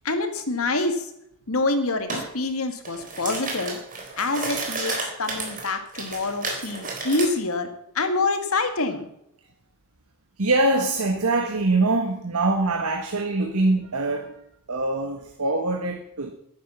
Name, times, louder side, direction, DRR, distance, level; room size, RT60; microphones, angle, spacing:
voice 1, 0.0-1.1 1.5-3.8 4.2-7.7 7.9-9.1, left 3 dB, 70° left, 7 dB, 2.0 m, -26 dB
sound 1, 2.1-2.3 2.7-7.3, right 3 dB, 40° right, 3.8 m, -31 dB
voice 2, 10.4-14.4 14.7-16.3, right 2 dB, 85° right, 4 dB, 1.4 m, -23 dB
11.0 x 10.5 x 6.9 m, 0.75 s
head